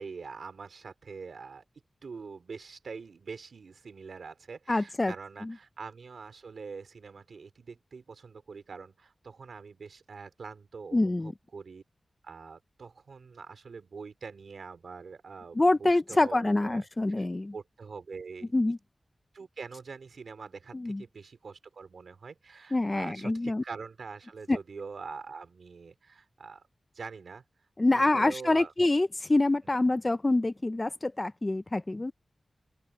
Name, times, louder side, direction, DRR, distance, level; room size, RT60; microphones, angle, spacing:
voice 1, 0.0-1.6 2.0-11.8 12.2-17.3 17.5-18.5 19.3-26.6 26.9-27.4 27.9-28.7, right 5 dB, 85° right, 3.5 m, -44 dB
voice 2, 4.7-5.1 5.4-5.5 10.9-11.3 15.6-17.5 18.5-18.8 20.7-21.0 22.7-23.6 24.5-24.6 27.8-32.1, left 2 dB, 25° left, 0.6 m, -26 dB
open air
wide cardioid pair, 110°, 0 cm